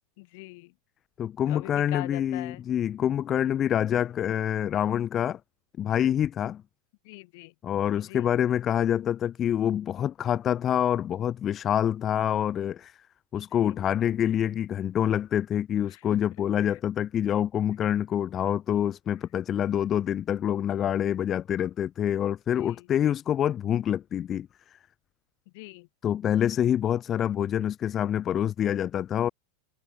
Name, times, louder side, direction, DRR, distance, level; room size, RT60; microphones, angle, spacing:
voice 1, 0.2-0.7 1.5-2.6 7.0-7.5 8.0-8.3 13.3-13.8 15.9-16.2 16.6-16.8 22.5-22.9 25.5-25.9, left 25 dB, 55° left, 3.0 m, -43 dB
voice 2, 1.2-5.4 5.8-6.6 7.6-13.0 13.3-24.5 26.0-29.3, left 10 dB, 30° left, 0.9 m, -26 dB
hypercardioid pair, 95°, 0 cm